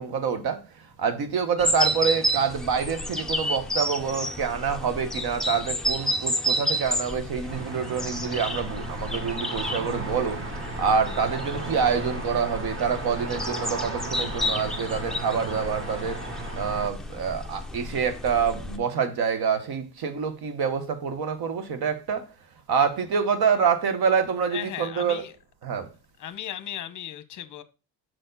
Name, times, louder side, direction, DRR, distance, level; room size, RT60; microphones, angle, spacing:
voice 1, 0.0-16.2 16.5-22.3 22.7-25.3 25.6-25.9, right 6 dB, 60° right, 1.2 m, -26 dB
sound 1, 1.6-18.8, equal, ahead, 0.4 m, -31 dB
sound 2, 7.5-16.9, right 3 dB, 30° right, 1.3 m, -35 dB
voice 2, 24.5-25.3 26.2-27.6, left 11 dB, 45° left, 0.8 m, -36 dB
6.3 x 4.4 x 3.9 m
cardioid pair, 135°, 41 cm